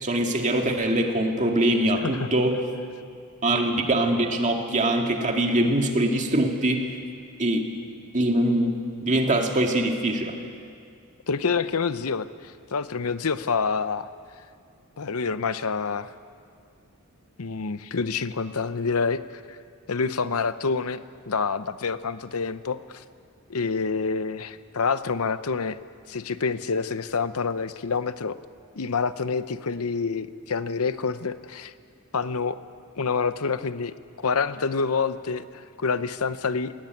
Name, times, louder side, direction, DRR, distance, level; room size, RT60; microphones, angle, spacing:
voice 1, 0.0-2.6 3.4-6.8 7.4-7.7 8.1-8.7 9.0-10.3, right 1 dB, 35° right, 3 dB, 2.1 m, -23 dB
voice 2, 11.3-14.1 15.0-16.1 17.4-19.2 19.5-19.6 19.9-23.0 23.5-25.8 26.1-28.4 28.8-31.7 32.1-32.6 33.0-36.7, left 5 dB, 70° left, 13 dB, 0.8 m, -27 dB
20.5 x 16.5 x 9.3 m, 2.3 s
head